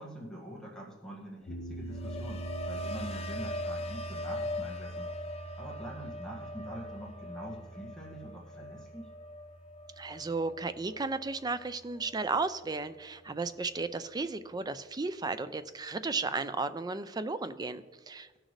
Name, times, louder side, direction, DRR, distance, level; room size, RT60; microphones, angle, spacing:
voice 1, 0.0-5.1 5.6-9.1, equal, 5° left, -4 dB, 1.7 m, -44 dB
sound 1, 1.5-11.7, right 2 dB, 80° left, 1.1 m, -44 dB
sound 2, 1.5-11.6 11.9-12.4, left 1 dB, 30° left, 0.7 m, -41 dB
voice 2, 10.0-18.4, right 3 dB, 20° right, 12 dB, 0.4 m, -34 dB
17.0 x 6.4 x 3.2 m, 1.3 s
head